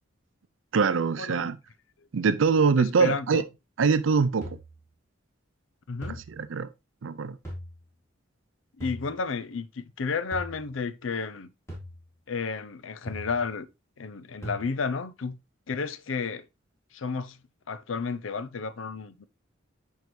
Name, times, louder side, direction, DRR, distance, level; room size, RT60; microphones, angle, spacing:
voice 1, 0.7-1.6 2.1-3.4 3.8-4.6 6.1-6.7 7.0-7.4, right 5 dB, 85° right, 0.5 m, -24 dB
voice 2, 2.8-3.4 5.9-6.2 8.8-11.5 12.3-13.7 14.0-15.4 15.7-16.5 16.9-17.4 17.7-19.3, left 5 dB, 90° left, 0.6 m, -32 dB
sound 1, 4.4-4.8 6.0-6.4 7.4-7.9 8.8-9.2 10.3-10.7 11.7-12.1 13.1-13.5 14.4-14.6, equal, 15° left, 3.5 m, -39 dB
9.4 x 4.7 x 3.1 m
head